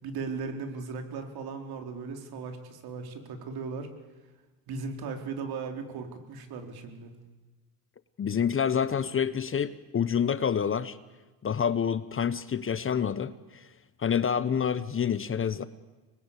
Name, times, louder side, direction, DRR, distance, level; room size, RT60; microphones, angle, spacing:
voice 1, 0.0-3.9 4.7-7.1, right 4 dB, 55° right, 5 dB, 4.3 m, -37 dB
voice 2, 8.2-11.0 11.4-13.6 14.0-15.7, left 7 dB, 30° left, 15 dB, 1.1 m, -28 dB
25.5 x 20.5 x 8.5 m, 1.2 s
hypercardioid pair, 80°, 43 cm